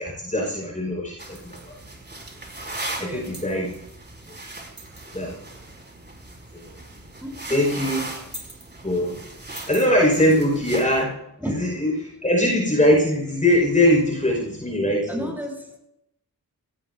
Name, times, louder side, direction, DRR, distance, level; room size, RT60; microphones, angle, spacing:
voice 1, 0.0-1.8 3.0-3.7 4.3-4.4 5.1-5.4 6.5-6.7 7.5-8.0 8.8-9.2 9.7-15.3, left 1 dB, 20° left, -2 dB, 5.6 m, -22 dB
sound 1, 1.2-11.0, right 2 dB, 30° right, 4.6 m, -38 dB
voice 2, 3.0-3.3 7.2-7.6 11.4-11.6 15.1-15.8, equal, 5° right, 0 dB, 7.6 m, -32 dB
23.5 x 17.5 x 2.8 m, 0.80 s
cardioid pair, 70°, 36 cm